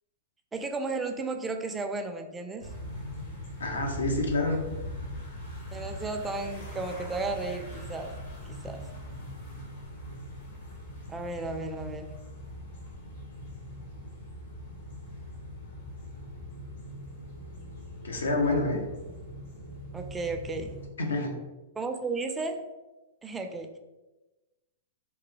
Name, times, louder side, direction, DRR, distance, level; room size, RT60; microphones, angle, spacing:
voice 1, 0.5-2.7 5.7-8.1 8.5-8.8 11.1-12.1 19.9-20.7 21.8-22.6 23.2-23.8, right 3 dB, 15° right, 5 dB, 0.4 m, -34 dB
sound 1, 2.6-20.9, equal, 65° left, 1.1 m, -41 dB
voice 2, 3.6-4.6 10.1-10.3 18.0-18.9 21.0-21.3, left 2 dB, 85° left, 2 dB, 0.6 m, -28 dB
3.0 x 2.2 x 3.1 m, 1.1 s
hypercardioid pair, 115°, 0 cm